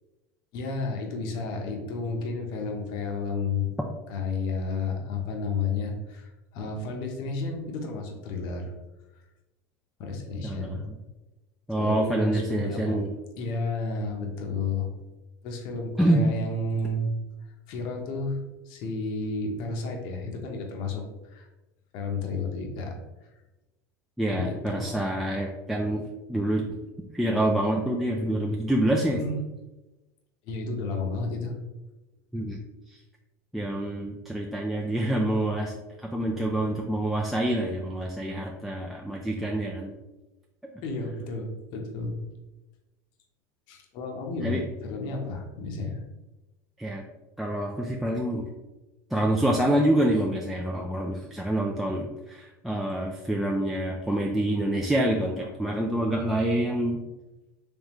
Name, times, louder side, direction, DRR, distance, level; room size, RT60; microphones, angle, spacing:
voice 1, 0.5-3.7 4.1-8.7 10.0-10.8 11.8-13.0 13.4-14.9 15.4-17.1 17.4-18.4 18.7-21.5 21.9-23.0 24.3-25.1 29.1-29.4 30.4-31.5 40.8-42.2 43.7-46.0 55.4-55.5, left 3 dB, 55° left, 2 dB, 0.8 m, -32 dB
voice 2, 10.4-10.8 11.7-13.1 16.0-16.2 24.2-26.0 26.3-26.6 27.1-29.2 32.3-32.6 32.9-33.0 33.5-39.9 44.4-44.6 46.8-47.0 47.4-48.5 49.1-57.0, right 1 dB, ahead, -1 dB, 0.3 m, -26 dB
3.6 x 3.3 x 3.0 m, 1.1 s
supercardioid pair, 140°, 9 cm